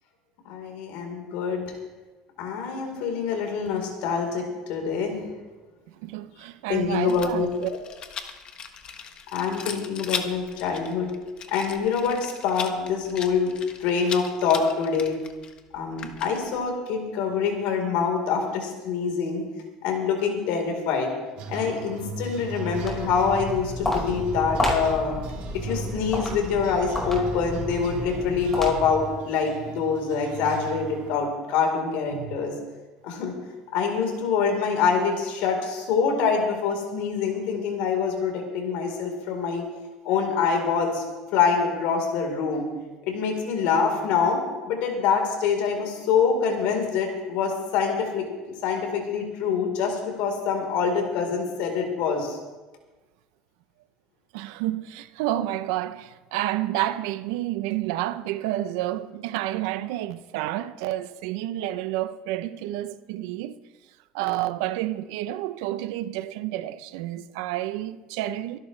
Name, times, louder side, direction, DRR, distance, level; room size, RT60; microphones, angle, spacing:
voice 1, 0.4-1.7 2.4-5.3 6.7-7.5 9.3-11.1 11.5-13.5 13.8-15.2 15.7-19.4 19.8-21.1 21.5-25.2 25.6-32.5 33.0-33.3 33.7-39.6 40.0-41.0 41.3-42.7 43.0-44.4 44.6-52.4, left 6 dB, 70° left, 4.2 m, -25 dB
voice 2, 6.0-7.7 32.1-32.4 54.3-63.6 64.1-68.6, right 14 dB, 85° right, 0.7 m, -30 dB
Rattle, 7.1-16.7, left 7 dB, 40° left, 1.4 m, -38 dB
sound 1, 21.4-31.1, right 4 dB, 60° right, 3.4 m, -38 dB
Walk footsteps, 22.6-29.1, left 1 dB, 15° left, 5.1 m, -31 dB
25.0 x 12.0 x 3.4 m
cardioid pair, 125°, 2 cm